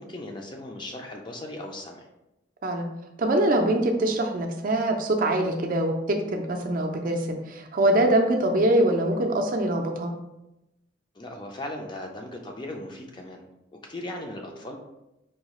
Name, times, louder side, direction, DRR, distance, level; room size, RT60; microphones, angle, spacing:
voice 1, 0.0-2.1 11.2-13.4 13.9-14.8, left 1 dB, 25° left, 2 dB, 0.4 m, -37 dB
voice 2, 3.2-10.1, right 1 dB, 45° right, 3 dB, 0.4 m, -23 dB
4.6 x 2.3 x 3.0 m, 0.91 s
head